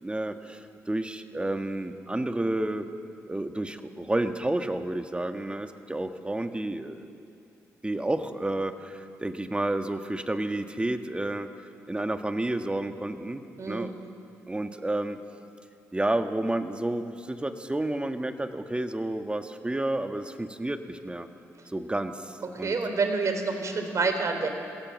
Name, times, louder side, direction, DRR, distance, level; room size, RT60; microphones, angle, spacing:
voice 1, 0.0-2.9 3.3-7.1 7.8-11.5 11.9-13.9 14.5-15.2 15.9-21.3 21.7-22.8, right 1 dB, 15° right, 7 dB, 1.6 m, -30 dB
voice 2, 13.6-13.9 22.5-24.5, right 4 dB, 50° right, 6 dB, 3.5 m, -27 dB
22.0 x 16.5 x 7.4 m, 2.5 s
hypercardioid pair, 50°, 7 cm